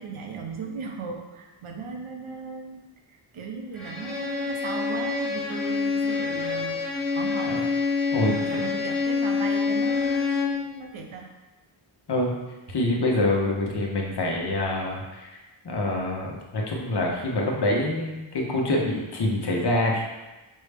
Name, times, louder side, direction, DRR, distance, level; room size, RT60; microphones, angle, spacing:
voice 1, 0.0-2.8 3.3-6.8 7.1-7.7 8.3-11.3, right 4 dB, 70° right, 2 dB, 0.7 m, -36 dB
Bowed string instrument, 3.7-10.7, left 4 dB, ahead, 0.7 m, -26 dB
voice 2, 8.1-8.6 12.1-12.3 12.7-15.4 15.6-20.0, left 1 dB, 50° left, -1 dB, 0.8 m, -26 dB
5.4 x 2.1 x 3.3 m, 1.1 s
wide cardioid pair, 95°, 50 cm